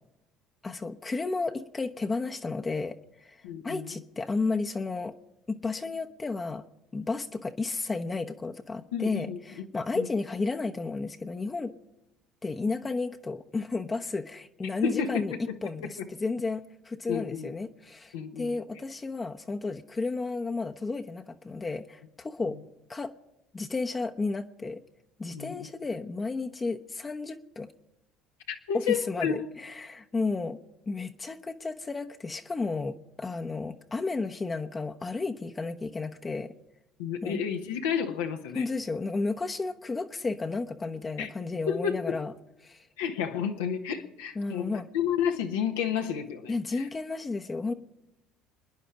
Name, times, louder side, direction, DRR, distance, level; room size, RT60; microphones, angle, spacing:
voice 1, 0.6-5.1 5.5-6.6 6.9-11.7 12.4-15.3 15.6-22.6 22.9-23.1 23.5-24.8 25.2-27.7 28.7-30.6 30.9-36.5 37.2-37.4 38.5-42.3 42.6-42.9 44.4-44.9 46.5-47.7, left 3 dB, 25° left, 4 dB, 1.0 m, -32 dB
voice 2, 3.4-3.9 8.9-9.6 9.9-10.1 14.8-15.6 15.8-16.1 17.1-17.5 18.1-18.6 22.5-22.6 25.3-25.7 28.5-29.5 37.0-38.6 41.2-41.3 41.7-42.2 43.0-46.9, left 7 dB, 80° left, 3 dB, 1.3 m, -31 dB
28.0 x 10.0 x 5.0 m, 0.95 s
hypercardioid pair, 65°, 0 cm